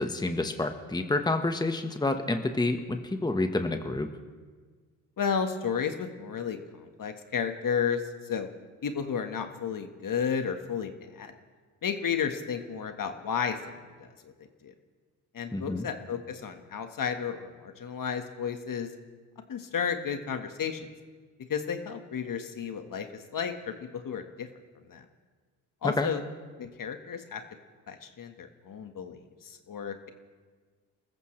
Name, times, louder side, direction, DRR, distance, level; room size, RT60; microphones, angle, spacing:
voice 1, 0.0-4.1 15.5-15.9 25.8-26.1, left 2 dB, 10° left, 6 dB, 1.3 m, -28 dB
voice 2, 5.2-8.0 8.3-8.5 8.8-11.3 11.8-13.7 14.0-14.3 14.6-14.7 15.3-18.9 19.5-20.8 21.5-24.5 24.9-25.0 25.8-26.2 26.6-27.4 27.9-30.1, left 7 dB, 45° left, 7 dB, 1.6 m, -32 dB
29.0 x 14.5 x 3.3 m, 1.5 s
supercardioid pair, 65°, 44 cm